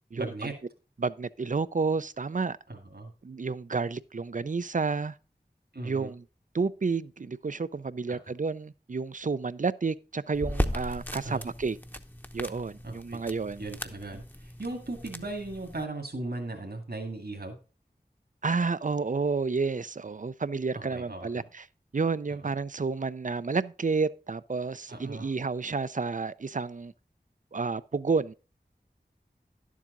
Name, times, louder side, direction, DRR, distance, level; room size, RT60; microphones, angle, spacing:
voice 1, 0.2-0.5 2.7-3.1 5.7-6.1 8.1-8.2 11.2-11.5 12.8-13.2 13.6-17.6 20.7-21.3 22.4-22.5 24.9-25.3, right 2 dB, 65° right, 2.0 m, -37 dB
voice 2, 1.0-2.6 3.2-5.1 5.8-6.2 6.5-11.8 12.3-13.6 18.4-21.7 21.9-26.9 27.5-28.3, right 4 dB, 50° right, 0.4 m, -30 dB
sound 1, 10.3-15.8, left 1 dB, 10° left, 0.8 m, -36 dB
11.0 x 7.4 x 3.8 m
wide cardioid pair, 45°, 17 cm